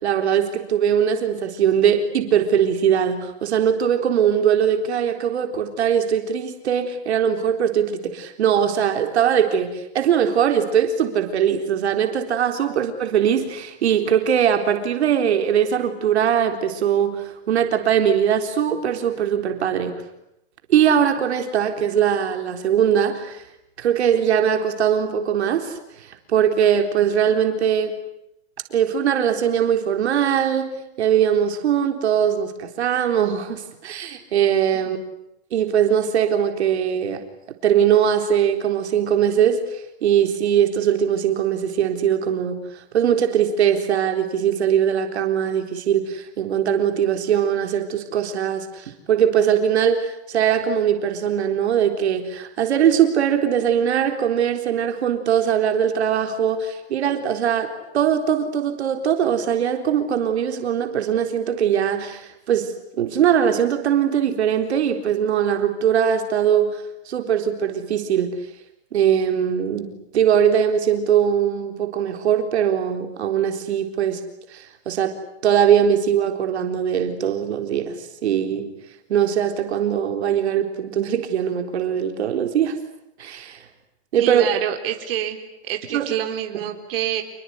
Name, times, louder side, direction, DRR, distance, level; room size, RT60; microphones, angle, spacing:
voice 1, 0.0-19.9 20.7-23.4 23.8-28.0 28.7-35.0 35.5-37.2 37.6-68.4 68.9-74.2 74.5-75.2 75.4-78.7 79.1-82.8 83.2-83.6 84.1-84.5 85.9-86.1, right 8 dB, 80° right, 6 dB, 4.0 m, -21 dB
voice 2, 84.2-85.4 85.6-87.2, right 11 dB, 60° right, 5 dB, 4.0 m, -26 dB
28.5 x 21.5 x 9.7 m, 0.84 s
supercardioid pair, 165°, 33 cm